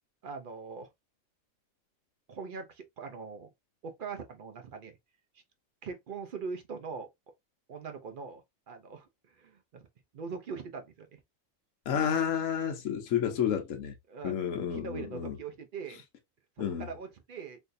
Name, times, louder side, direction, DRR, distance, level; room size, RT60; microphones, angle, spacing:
voice 1, 0.2-0.9 2.3-3.5 3.8-5.0 5.8-7.1 7.7-9.8 10.1-11.2 14.1-14.3 14.7-16.0 16.6-17.6, right 5 dB, 60° right, 0.5 m, -42 dB
voice 2, 11.9-13.9 14.2-15.4 16.6-16.9, left 8 dB, 70° left, 1.2 m, -30 dB
4.2 x 2.6 x 2.5 m
omnidirectional pair, 1.4 m